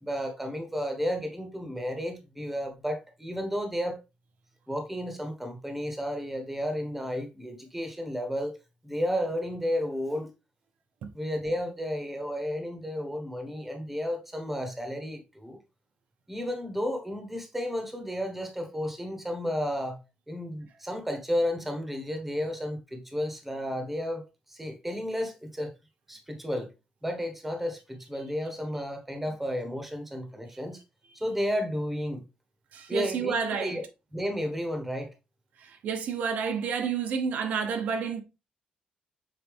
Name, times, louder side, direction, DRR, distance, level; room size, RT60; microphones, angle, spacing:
voice 1, 0.0-4.0 4.7-8.6 8.8-10.3 11.1-15.6 16.3-20.0 20.3-25.7 26.1-26.7 27.0-30.8 31.1-32.2 32.9-33.8 34.1-35.1, equal, 5° right, 1.2 m, -32 dB
voice 2, 32.7-33.8 35.6-38.2, right 6 dB, 75° right, 1.0 m, -30 dB
6.5 x 4.2 x 3.4 m
wide cardioid pair, 170°, 3 cm